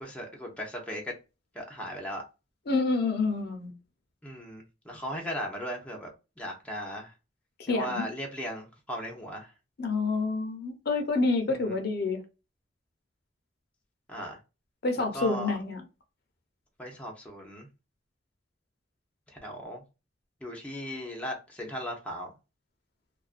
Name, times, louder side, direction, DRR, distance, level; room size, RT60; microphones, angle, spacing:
voice 1, 0.0-1.1 1.5-2.2 4.2-7.1 7.7-9.5 11.6-11.8 14.1-14.4 15.0-15.6 16.8-17.7 19.3-19.8 20.4-22.3, equal, 5° left, 0.5 m, -37 dB
voice 2, 2.7-3.8 7.7-8.0 9.8-12.2 14.8-15.8, left 3 dB, 55° left, 0.6 m, -28 dB
2.3 x 2.2 x 2.4 m
head